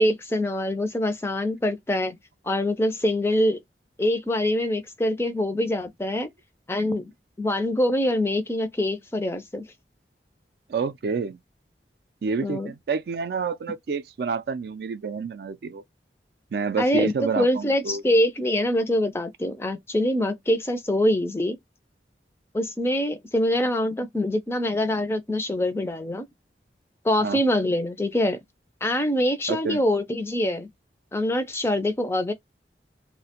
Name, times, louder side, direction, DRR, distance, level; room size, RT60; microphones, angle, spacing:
voice 1, 0.0-2.2 2.5-3.6 4.0-6.3 6.7-7.1 7.4-9.6 12.4-12.7 16.8-21.6 22.5-26.3 27.0-28.4 28.8-30.7 31.1-32.3, left 1 dB, 15° left, 0.3 m, -24 dB
voice 2, 10.7-11.4 12.2-15.8 16.5-18.0 27.2-27.4 29.5-29.8, right 5 dB, 60° right, 0.3 m, -28 dB
2.3 x 2.1 x 2.8 m
head